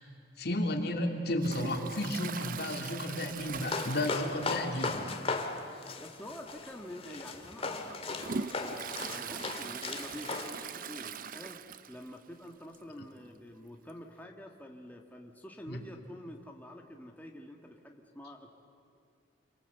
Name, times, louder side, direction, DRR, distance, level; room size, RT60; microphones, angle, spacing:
voice 1, 0.4-5.1 15.7-15.8, left 1 dB, 60° left, 3 dB, 2.7 m, -33 dB
Toilet flush, 1.4-4.8 5.1-5.2 5.6-5.7 6.6-6.7 7.2-12.2 12.5-12.6 12.7-12.8 13.9-14.0, right 6 dB, 50° right, 0.6 m, -41 dB
sound 1, 3.6-10.5, left 3 dB, 35° left, 2.0 m, -37 dB
voice 2, 6.0-18.5, left 1 dB, 10° left, 1 dB, 1.6 m, -47 dB
28.5 x 24.0 x 8.1 m, 2.5 s
head